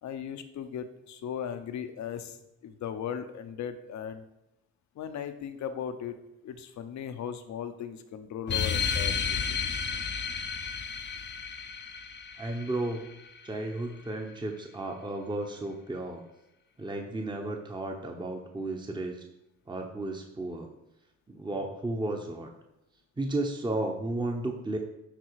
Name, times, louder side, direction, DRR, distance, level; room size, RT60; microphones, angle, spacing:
voice 1, 0.0-2.4 2.6-4.2 4.9-6.1 6.4-9.6, left 8 dB, 65° left, 9 dB, 0.9 m, -37 dB
sound 1, 8.5-13.5, left 6 dB, 35° left, 0.7 m, -32 dB
voice 2, 12.4-13.1 13.4-16.2 16.8-19.2 19.7-20.7 21.3-22.5 23.2-24.8, right 2 dB, 15° right, 2 dB, 1.0 m, -33 dB
10.0 x 3.8 x 4.8 m, 0.90 s
cardioid pair, 90°, 30 cm